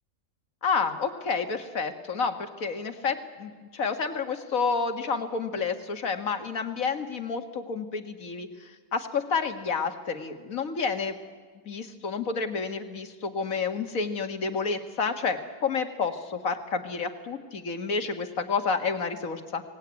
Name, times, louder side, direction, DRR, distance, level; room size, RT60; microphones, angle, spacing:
voice 1, 0.6-11.2 11.7-19.6, left 5 dB, 75° left, 7 dB, 2.1 m, -30 dB
24.5 x 18.5 x 9.6 m, 1.5 s
omnidirectional pair, 1.4 m